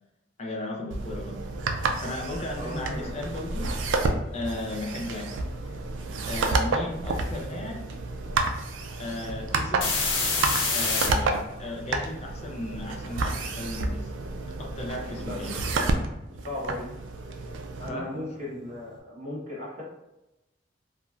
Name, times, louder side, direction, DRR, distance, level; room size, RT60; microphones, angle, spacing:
voice 1, 0.4-1.5 1.8-4.0 4.3-5.8 6.3-7.9 9.0-9.9 10.7-14.1 14.6-15.6 17.9-18.2, left 2 dB, 35° left, 0 dB, 0.4 m, -36 dB
sound 1, 0.9-17.9, right 3 dB, 85° right, 0.4 m, -30 dB
sound 2, 2.4-2.5 3.2-5.4 9.8-11.1 13.5-15.7 16.0-16.1, left 3 dB, 85° left, 0.7 m, -29 dB
voice 2, 2.6-3.1 15.2-15.7 16.4-16.9 17.8-19.8, left 1 dB, 40° right, -5 dB, 1.0 m, -36 dB
3.0 x 2.4 x 2.3 m, 0.93 s
head